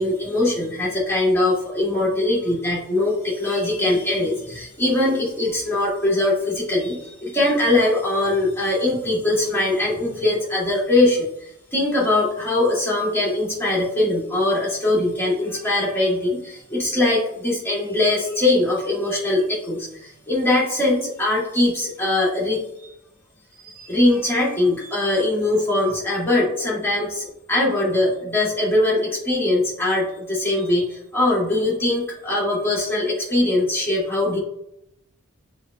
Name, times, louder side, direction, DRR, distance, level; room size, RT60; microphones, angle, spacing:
voice 1, 0.0-22.9 23.6-34.4, left 2 dB, 10° left, -7 dB, 1.5 m, -21 dB
6.9 x 2.5 x 2.2 m, 0.80 s
head